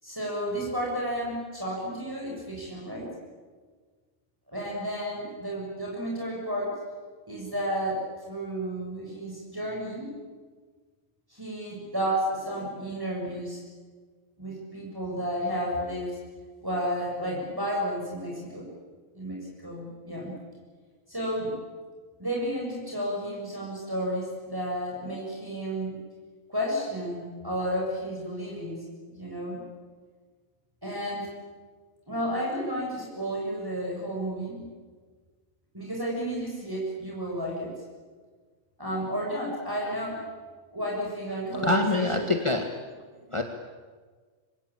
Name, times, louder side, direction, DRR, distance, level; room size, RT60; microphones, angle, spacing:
voice 1, 0.0-3.1 4.5-6.8 7.3-10.1 11.3-13.6 14.4-16.2 16.6-18.7 19.1-20.4 21.1-21.6 22.2-26.0 26.5-28.8 29.2-29.6 30.8-31.3 32.1-34.7 35.7-37.7 38.8-40.2 40.7-42.3, equal, 15° right, -3 dB, 7.1 m, -32 dB
voice 2, 41.6-42.8 43.3-43.4, left 2 dB, 20° left, 3 dB, 1.8 m, -25 dB
27.0 x 25.0 x 8.8 m, 1.5 s
omnidirectional pair, 1.4 m